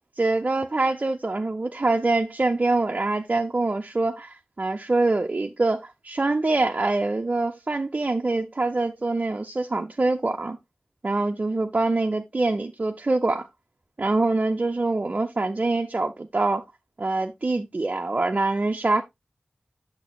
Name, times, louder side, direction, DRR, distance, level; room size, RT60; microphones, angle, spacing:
voice 1, 0.2-10.6 11.0-13.5 14.0-16.6 17.0-19.0, right 2 dB, 40° right, 0.6 m, -24 dB
8.4 x 6.7 x 2.2 m
wide cardioid pair, 70°, 4 cm